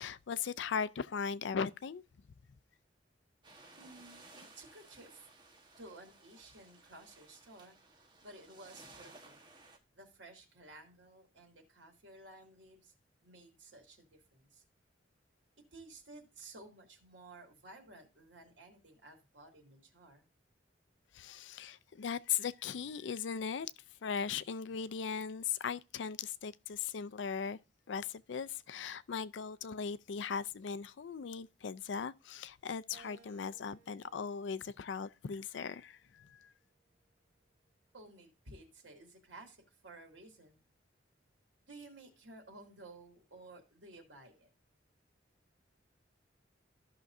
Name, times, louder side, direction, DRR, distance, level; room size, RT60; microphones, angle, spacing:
voice 1, 0.0-2.0 21.1-23.7 24.0-27.6 27.9-36.5, left 6 dB, 75° left, 0.4 m, -38 dB
sound 1, 3.4-9.8, right 2 dB, 25° right, 1.3 m, -58 dB
voice 2, 3.8-5.3 5.8-7.8 8.2-9.4 9.9-12.9 13.2-14.6 15.7-20.3 37.9-40.6 41.7-44.5, right 2 dB, 80° right, 2.6 m, -55 dB
Keyboard (musical), 32.9-35.4 36.0-37.2, right 5 dB, 5° right, 4.1 m, -64 dB
14.0 x 5.9 x 2.6 m
head